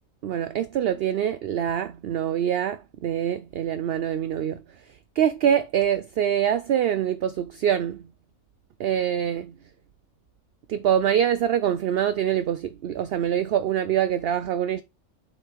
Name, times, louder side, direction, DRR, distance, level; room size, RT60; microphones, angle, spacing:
voice 1, 0.2-4.6 5.2-8.0 8.8-9.5 10.7-14.8, right 9 dB, 60° right, 0.6 m, -24 dB
7.5 x 4.8 x 3.5 m
omnidirectional pair, 1.4 m